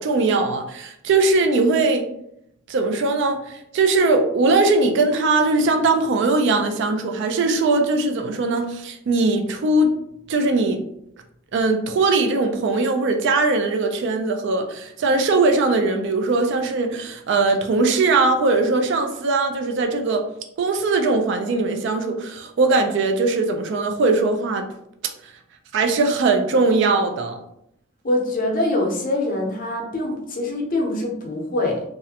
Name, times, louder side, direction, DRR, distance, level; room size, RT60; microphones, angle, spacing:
voice 1, 0.0-2.1 2.7-10.0 10.3-10.8 11.5-20.2 20.6-24.7 25.7-27.4, right 3 dB, 60° right, 5 dB, 0.3 m, -20 dB
voice 2, 28.0-31.8, left 2 dB, 45° left, 1 dB, 0.5 m, -24 dB
2.4 x 2.1 x 2.7 m, 0.76 s
head